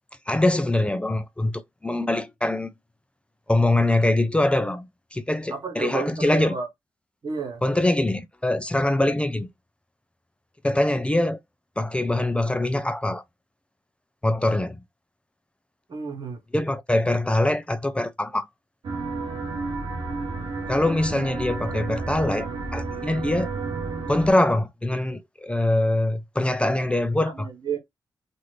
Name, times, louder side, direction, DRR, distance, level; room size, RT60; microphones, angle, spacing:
voice 1, 0.3-2.7 3.5-6.6 7.6-9.5 10.6-11.4 11.8-13.2 14.2-14.8 16.5-18.5 20.7-23.5 24.1-27.5, left 1 dB, 15° left, 0.4 m, -23 dB
voice 2, 5.5-6.7 7.2-7.6 15.9-16.4 27.2-27.8, right 5 dB, 60° right, 1.3 m, -31 dB
sound 1, 18.8-24.3, right 3 dB, 75° right, 0.8 m, -31 dB
2.9 x 2.5 x 3.3 m
cardioid pair, 75°, 8 cm